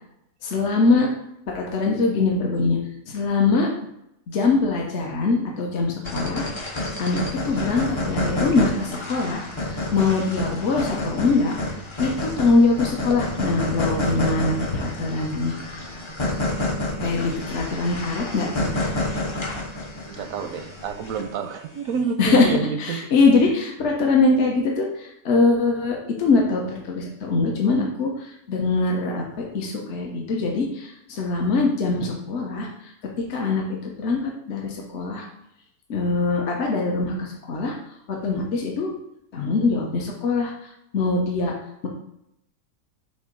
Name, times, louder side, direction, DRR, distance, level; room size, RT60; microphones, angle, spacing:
voice 1, 0.4-1.1 1.5-2.8 3.1-3.7 4.3-11.6 12.0-15.5 17.0-18.7 22.2-22.5 22.8-32.7 33.2-35.3 35.9-37.7 38.1-38.9 39.3-41.5, left 3 dB, 60° left, 0 dB, 1.1 m, -23 dB
sound 1, 6.0-21.5, left 2 dB, 35° left, 0.5 m, -29 dB
voice 2, 20.1-23.0, right 6 dB, 85° right, 8 dB, 1.0 m, -28 dB
6.8 x 2.7 x 5.2 m, 0.81 s
omnidirectional pair, 1.4 m